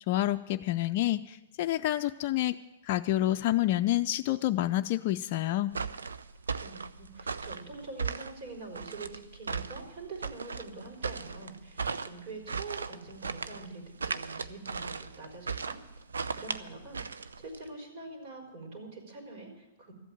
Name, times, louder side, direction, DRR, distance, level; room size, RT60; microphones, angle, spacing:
voice 1, 0.0-2.6 2.8-5.8, left 14 dB, 50° left, 6 dB, 0.4 m, -28 dB
sound 1, 5.7-17.7, right 5 dB, 85° right, 0.6 m, -37 dB
voice 2, 6.6-15.8 16.3-19.9, right 3 dB, 50° right, 1 dB, 4.6 m, -45 dB
14.0 x 8.2 x 8.8 m, 0.99 s
hypercardioid pair, 120°, 0 cm